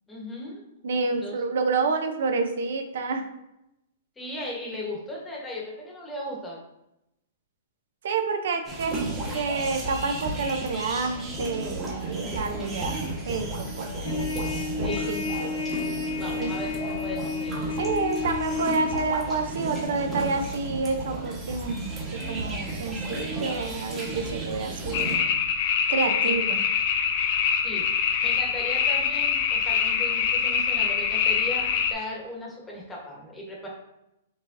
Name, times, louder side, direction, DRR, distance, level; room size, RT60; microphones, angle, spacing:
voice 1, 0.1-0.6 1.2-1.4 4.2-6.6 12.6-13.2 14.8-15.1 16.2-16.7 17.0-17.6 26.1-26.3 27.6-27.8 28.2-33.7, left 1 dB, 10° left, -3 dB, 1.1 m, -37 dB
voice 2, 0.8-3.2 8.0-9.0 9.3-13.9 14.8-15.5 16.4-16.5 17.8-25.2 25.9-26.6, right 4 dB, 70° right, 6 dB, 0.5 m, -29 dB
sound 1, 8.6-25.2, right 2 dB, 20° right, 1.1 m, -33 dB
Trumpet, 14.0-19.1, left 5 dB, 80° left, 1.1 m, -31 dB
sound 2, 24.9-31.9, left 7 dB, 50° left, 0.5 m, -24 dB
5.2 x 3.1 x 2.5 m, 0.87 s
hypercardioid pair, 155°, 0 cm